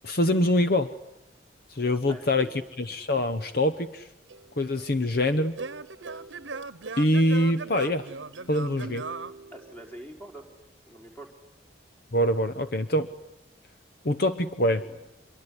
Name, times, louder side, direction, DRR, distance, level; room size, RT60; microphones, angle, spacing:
voice 1, 0.0-0.9 1.7-2.5 2.8-4.1 4.6-5.5 7.0-8.1 8.5-9.0 12.1-13.1 14.0-14.8, left 1 dB, 50° left, 11 dB, 1.0 m, -24 dB
voice 2, 2.1-2.6 9.5-10.5 10.9-11.3 14.7-15.0, right 1 dB, 10° left, 2 dB, 4.7 m, -44 dB
Singing / Plucked string instrument, 4.3-10.2, right 4 dB, 80° right, 1.0 m, -39 dB
26.5 x 23.0 x 9.8 m, 0.87 s
head